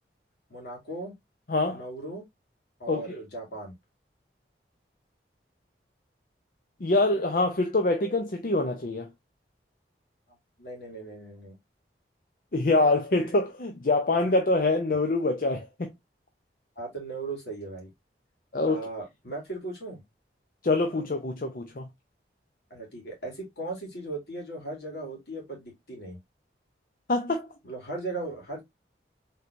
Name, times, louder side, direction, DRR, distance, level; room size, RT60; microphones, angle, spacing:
voice 1, 0.5-1.1 1.7-2.3 2.8-3.7 10.6-11.6 16.8-17.9 18.7-20.0 22.7-26.2 27.6-28.6, right 2 dB, 70° left, 2.4 m, -37 dB
voice 2, 1.5-1.8 2.9-3.1 6.8-9.1 12.5-15.9 18.5-18.8 20.6-21.9 27.1-27.5, left 2 dB, 50° left, 0.6 m, -25 dB
4.4 x 3.8 x 2.5 m
head